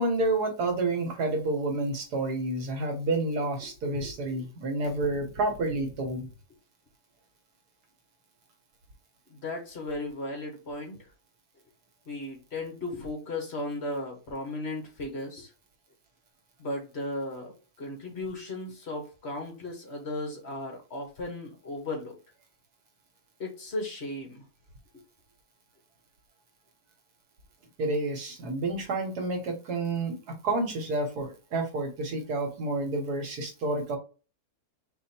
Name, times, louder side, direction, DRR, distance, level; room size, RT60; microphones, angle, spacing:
voice 1, 0.0-6.3 27.8-34.0, right 2 dB, 90° right, 4 dB, 1.8 m, -29 dB
voice 2, 9.3-11.1 12.1-15.5 16.6-17.5 17.8-22.1 23.4-24.4, left 2 dB, 45° left, 2 dB, 1.7 m, -36 dB
4.4 x 2.6 x 4.3 m, 0.32 s
omnidirectional pair, 1.6 m